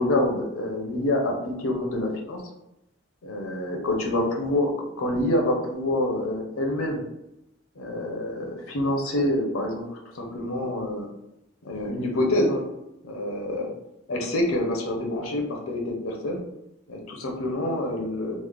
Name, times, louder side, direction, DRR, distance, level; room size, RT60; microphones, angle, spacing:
voice 1, 0.0-2.4 3.2-7.0 7.8-11.1 11.6-12.7 13.0-13.7 14.1-16.4 16.9-18.4, left 1 dB, 90° left, 1 dB, 0.6 m, -27 dB
3.1 x 2.1 x 3.4 m, 0.87 s
head